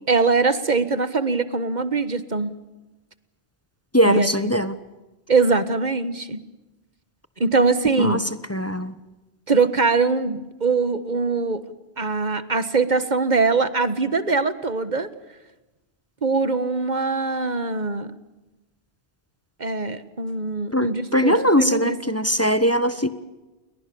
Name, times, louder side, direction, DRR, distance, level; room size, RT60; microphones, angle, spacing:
voice 1, 0.1-2.5 4.0-4.3 5.3-6.4 7.4-8.2 9.5-11.6 12.0-15.1 16.2-18.1 19.6-21.9, right 4 dB, 40° right, 13 dB, 1.5 m, -22 dB
voice 2, 3.9-4.7 8.0-8.2 8.5-8.9 20.7-23.1, equal, 15° left, 13 dB, 1.2 m, -20 dB
30.0 x 22.5 x 7.0 m, 1.1 s
omnidirectional pair, 1.1 m